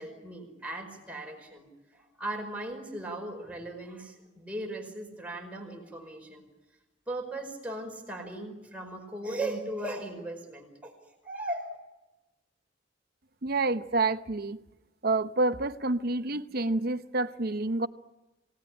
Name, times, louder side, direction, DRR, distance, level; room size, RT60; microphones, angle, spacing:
voice 1, 0.0-6.5 7.1-11.8, right 1 dB, 5° right, 5.0 m, -38 dB
voice 2, 13.4-14.6 15.0-17.9, right 2 dB, 50° right, 0.9 m, -28 dB
27.5 x 18.5 x 9.9 m
head